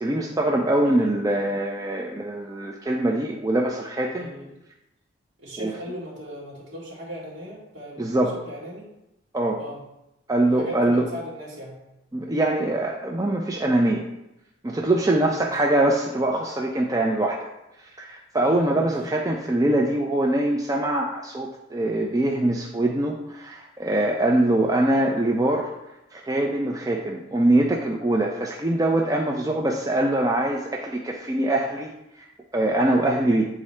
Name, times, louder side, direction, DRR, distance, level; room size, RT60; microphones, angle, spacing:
voice 1, 0.0-4.3 5.6-5.7 8.0-8.3 9.3-9.6 10.3-11.1 12.1-14.0 14.6-17.4 18.0-25.7 26.1-31.9 32.5-33.5, right 1 dB, 15° right, 0 dB, 0.4 m, -23 dB
voice 2, 4.2-4.5 5.4-8.2 8.5-8.8 9.6-9.8 10.5-11.8 13.5-13.9 15.1-15.3 18.4-18.9, equal, 65° right, -5 dB, 2.2 m, -38 dB
8.4 x 3.7 x 3.2 m, 0.90 s
head